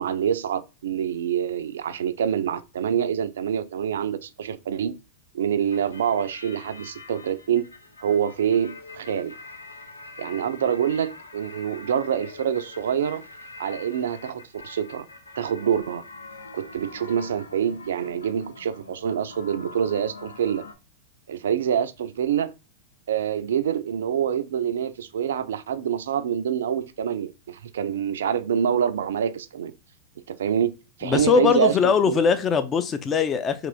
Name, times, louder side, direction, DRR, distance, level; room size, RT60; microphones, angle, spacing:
voice 1, 0.0-5.0 5.3-7.7 8.0-9.3 10.2-13.2 13.6-15.1 15.4-16.0 16.5-20.6 21.3-22.5 23.1-29.7 30.3-32.2, right 8 dB, 70° right, 0.4 m, -26 dB
sound 1, 5.7-20.7, left 3 dB, 90° left, 0.6 m, -44 dB
voice 2, 31.0-33.7, left 6 dB, 25° left, 0.6 m, -21 dB
3.8 x 2.9 x 3.4 m
figure-of-eight pair, 95°, 0 cm